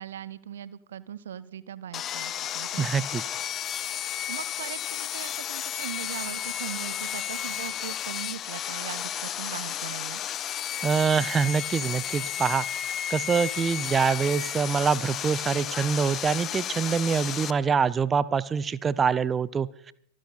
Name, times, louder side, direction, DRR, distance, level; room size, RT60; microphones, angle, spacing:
voice 1, 0.0-3.1 4.3-10.2, right 10 dB, 60° right, 19 dB, 0.6 m, -40 dB
Sawing, 1.9-17.5, left 10 dB, 30° left, 0.5 m, -33 dB
voice 2, 2.8-3.2 10.8-12.6 13.1-19.9, right 6 dB, 20° right, 19 dB, 0.5 m, -25 dB
24.5 x 9.9 x 4.1 m, 0.70 s
figure-of-eight pair, 90°, 0 cm